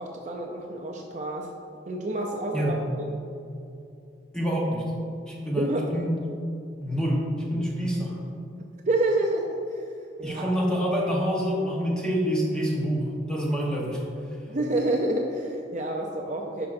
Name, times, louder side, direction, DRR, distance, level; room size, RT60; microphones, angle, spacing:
voice 1, 0.0-1.5 1.9-2.8 5.6-5.9 8.9-9.9 10.2-10.5 14.5-16.7, right 2 dB, 40° right, 1 dB, 0.5 m, -28 dB
voice 2, 2.5-2.8 4.3-4.8 5.3-6.2 6.8-8.2 10.2-14.0, equal, 5° left, -4 dB, 1.1 m, -27 dB
9.9 x 5.7 x 2.6 m, 2.7 s
head